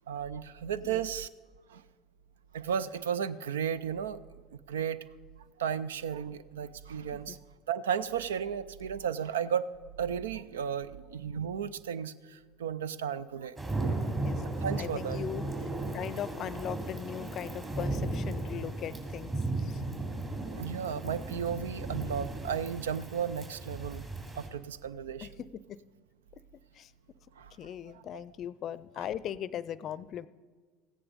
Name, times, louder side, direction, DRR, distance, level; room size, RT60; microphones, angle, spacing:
voice 1, 0.1-1.3 1.7-1.8 2.5-4.2 4.7-5.0 5.6-7.4 7.7-9.7 10.0-13.6 14.6-15.2 20.5-24.0 24.4-25.3 27.4-27.5 27.9-28.2, right 8 dB, 85° right, 17 dB, 0.4 m, -34 dB
sound 1, 13.6-24.5, right 2 dB, 25° right, 3.3 m, -35 dB
voice 2, 14.8-19.8 25.2-25.8 26.8-26.9 27.6-30.3, left 10 dB, 50° left, 18 dB, 0.5 m, -39 dB
15.0 x 9.9 x 5.2 m, 1.5 s
hypercardioid pair, 80°, 0 cm